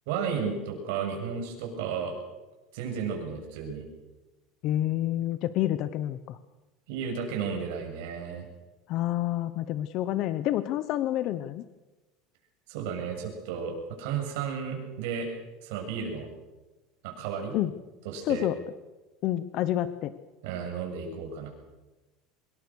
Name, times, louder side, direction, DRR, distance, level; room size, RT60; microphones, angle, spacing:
voice 1, 0.1-2.1 2.7-3.9 6.9-8.5 12.7-15.3 15.6-16.3 17.0-17.5 18.0-18.5 20.4-21.5, right 6 dB, 70° right, 2 dB, 7.5 m, -33 dB
voice 2, 4.6-6.4 8.9-11.6 17.5-17.7 18.2-18.6 19.2-20.1, left 13 dB, 45° left, 13 dB, 0.9 m, -28 dB
25.0 x 21.5 x 6.4 m, 1.1 s
cardioid pair, 165°, 0 cm